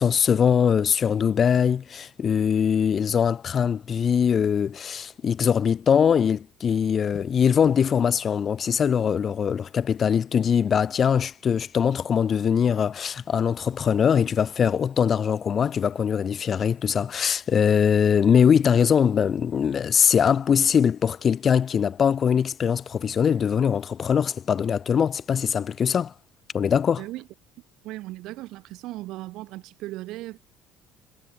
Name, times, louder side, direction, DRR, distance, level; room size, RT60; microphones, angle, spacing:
voice 1, 0.0-26.1 26.5-27.0, left 7 dB, 40° left, 0.5 m, -22 dB
voice 2, 27.0-27.3 27.8-30.4, right 17 dB, 75° right, 2.8 m, -37 dB
cardioid pair, 105°, 0 cm